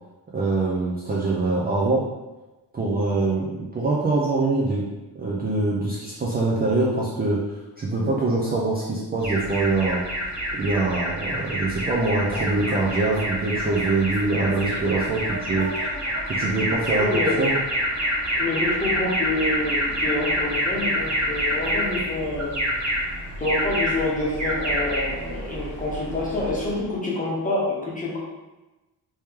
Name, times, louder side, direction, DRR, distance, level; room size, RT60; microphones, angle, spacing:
voice 1, 0.3-2.0 2.7-4.8 5.2-7.4 7.8-10.0 10.5-15.7 16.3-17.6, right 3 dB, 25° right, -5 dB, 0.4 m, -24 dB
Alarm, 9.2-26.8, equal, 45° right, 1.2 m, -27 dB
voice 2, 17.0-17.4 18.4-22.6 23.4-28.2, left 2 dB, 20° left, -5 dB, 0.9 m, -27 dB
3.2 x 2.9 x 3.5 m, 1.1 s
wide cardioid pair, 150°, 41 cm